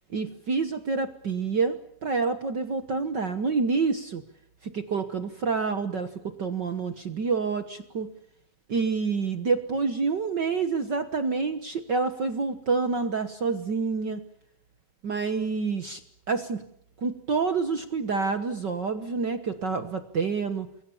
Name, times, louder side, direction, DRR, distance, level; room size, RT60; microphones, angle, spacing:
voice 1, 0.1-4.2 4.6-8.1 8.7-14.2 15.0-16.0 16.3-16.6 17.0-20.7, right 4 dB, 55° right, 9 dB, 1.2 m, -28 dB
29.0 x 23.0 x 7.2 m, 0.72 s
omnidirectional pair, 3.8 m